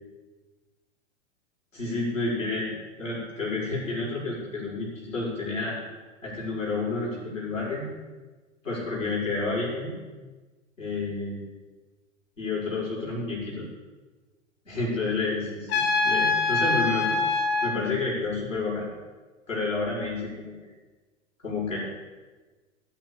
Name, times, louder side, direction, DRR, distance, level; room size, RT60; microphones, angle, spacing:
voice 1, 1.7-5.8 6.2-7.9 8.6-9.9 10.8-11.4 12.4-13.7 14.7-17.2 17.6-18.9 19.5-20.5 21.4-21.8, left 3 dB, 80° left, -6 dB, 5.9 m, -30 dB
Trumpet, 15.7-17.7, left 3 dB, 55° left, 3.7 m, -24 dB
17.0 x 6.3 x 8.5 m, 1.3 s
figure-of-eight pair, 100°, 38 cm